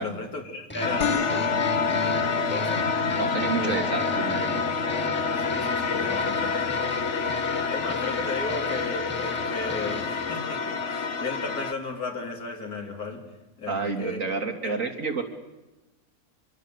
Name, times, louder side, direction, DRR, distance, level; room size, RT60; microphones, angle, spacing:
voice 1, 0.0-1.5 1.9-2.8 3.1-3.8 5.4-7.0 7.3-13.2 13.6-14.2 14.6-14.8, left 3 dB, 70° left, 2 dB, 3.9 m, -35 dB
sound 1, 0.7-10.3, equal, 5° left, 1.5 m, -40 dB
sound 2, 0.8-11.7, left 5 dB, 50° left, 1.4 m, -28 dB
sound 3, 1.0-10.0, left 7 dB, 85° left, 1.6 m, -35 dB
voice 2, 3.2-4.6 13.7-15.2, right 4 dB, 55° right, 2 dB, 3.2 m, -29 dB
25.5 x 22.5 x 8.2 m, 1.1 s
omnidirectional pair, 1.7 m